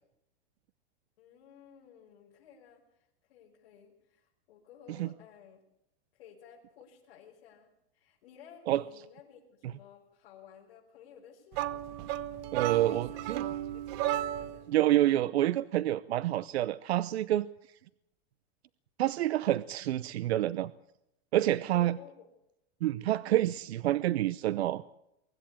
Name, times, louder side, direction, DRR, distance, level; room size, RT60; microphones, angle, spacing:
voice 1, 1.2-5.6 6.1-11.8 12.8-13.3 13.7-14.8 21.7-22.3, left 7 dB, 60° left, -4 dB, 6.2 m, -55 dB
sound 1, 11.5-14.7, right 12 dB, 35° right, 1.0 m, -34 dB
voice 2, 12.5-13.4 14.7-17.5 19.0-20.7 21.3-22.0 22.8-24.8, right 14 dB, 85° right, 17 dB, 0.8 m, -28 dB
24.0 x 13.5 x 8.8 m, 0.84 s
supercardioid pair, 155°, 31 cm